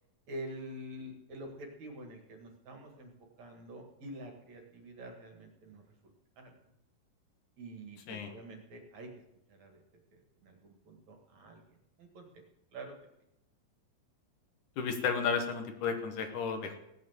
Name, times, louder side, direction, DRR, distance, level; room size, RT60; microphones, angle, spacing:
voice 1, 0.3-3.1 3.4-5.9 6.4-6.5 7.6-9.1 9.5-9.8 10.1-12.3 12.7-12.9, right 1 dB, 55° right, 3 dB, 3.0 m, -47 dB
voice 2, 14.8-16.8, left 6 dB, 65° left, 6 dB, 2.7 m, -33 dB
17.0 x 9.2 x 7.3 m, 0.85 s
omnidirectional pair, 4.0 m